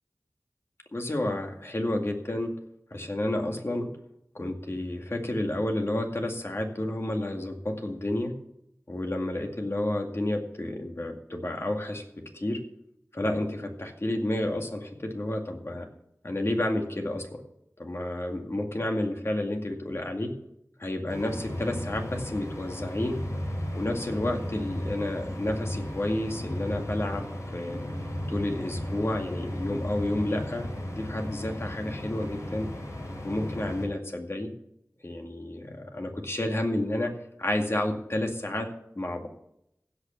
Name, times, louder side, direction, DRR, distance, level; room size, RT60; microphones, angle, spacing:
voice 1, 0.9-2.5 2.9-3.9 4.3-8.3 8.9-12.0 12.3-12.6 13.1-15.9 16.2-17.4 17.8-20.3 20.8-23.2 23.7-27.9 28.3-32.7 33.2-34.5 35.0-37.1 37.4-38.7 39.0-39.3, left 1 dB, 50° left, 3 dB, 2.1 m, -30 dB
sound 1, 21.1-33.9, left 1 dB, 70° left, 3.4 m, -35 dB
16.0 x 5.8 x 7.3 m, 0.80 s
wide cardioid pair, 55°, 5 cm